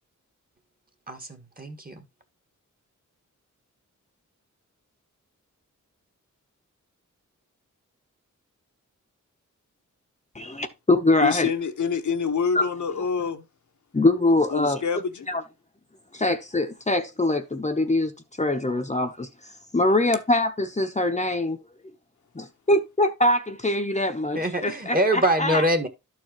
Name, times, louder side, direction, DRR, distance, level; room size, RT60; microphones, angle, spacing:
voice 1, 1.1-2.0 24.3-25.9, right 1 dB, 30° right, 1.6 m, -24 dB
voice 2, 10.3-11.5 12.5-12.7 13.9-14.8 15.3-15.4 16.1-18.1 18.4-21.6 22.3-25.6, left 2 dB, 20° left, 0.9 m, -23 dB
voice 3, 11.2-13.4 14.5-15.3, left 6 dB, 65° left, 1.0 m, -26 dB
12.5 x 4.6 x 3.0 m
wide cardioid pair, 95°, 31 cm